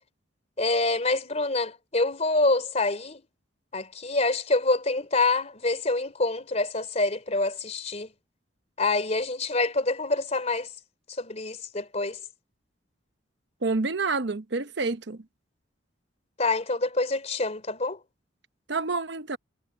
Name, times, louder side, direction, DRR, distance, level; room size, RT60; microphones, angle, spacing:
voice 1, 0.6-3.2 3.7-8.1 8.8-10.7 11.2-12.2 16.4-18.0, left 2 dB, 35° left, 3.2 m, -26 dB
voice 2, 13.6-15.2 18.7-19.4, right 3 dB, 65° right, 0.9 m, -28 dB
head